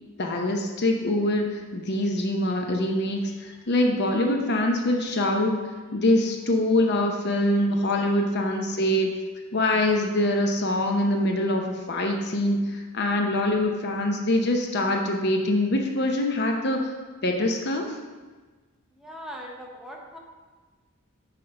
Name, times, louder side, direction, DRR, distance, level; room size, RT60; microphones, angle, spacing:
voice 1, 0.2-5.6 5.9-9.1 9.5-16.9 17.2-17.9, left 1 dB, 55° left, 3 dB, 0.8 m, -24 dB
voice 2, 19.0-20.2, equal, ahead, -1 dB, 0.7 m, -40 dB
5.9 x 4.1 x 5.2 m, 1.3 s
head